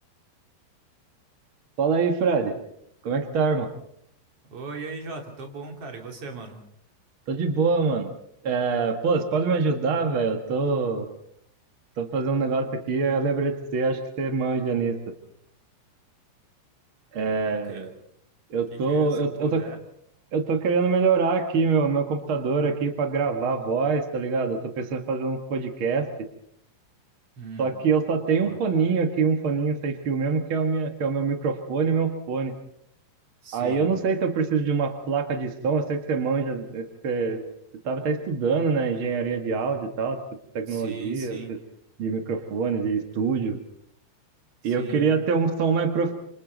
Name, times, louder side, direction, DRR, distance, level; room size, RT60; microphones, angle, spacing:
voice 1, 1.8-2.6 3.0-3.7 7.3-8.1 8.4-11.1 12.0-15.0 17.1-17.9 18.5-19.6 20.3-26.1 27.6-32.5 33.5-37.4 37.8-40.2 40.5-41.6 42.0-43.6 44.6-46.1, right 5 dB, 65° right, 5 dB, 1.3 m, -25 dB
voice 2, 4.5-6.6 17.7-17.9 18.9-19.8 27.4-27.8 28.3-28.6 33.4-33.9 40.7-41.5 44.6-45.1, right 4 dB, 35° right, 2 dB, 3.3 m, -39 dB
28.5 x 26.0 x 4.0 m, 0.69 s
omnidirectional pair, 5.0 m